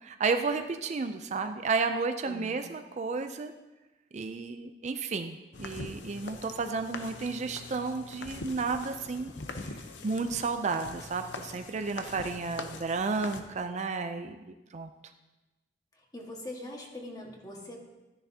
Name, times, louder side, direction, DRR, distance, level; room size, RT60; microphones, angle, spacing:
voice 1, 0.0-3.5 4.1-9.3 10.0-14.4 14.7-14.9, right 4 dB, 40° right, 7 dB, 0.4 m, -32 dB
sound 1, 5.5-13.4, left 3 dB, 85° left, 0.8 m, -43 dB
voice 2, 16.1-17.8, left 1 dB, 20° left, -1 dB, 1.6 m, -42 dB
13.0 x 10.0 x 2.8 m, 1.1 s
head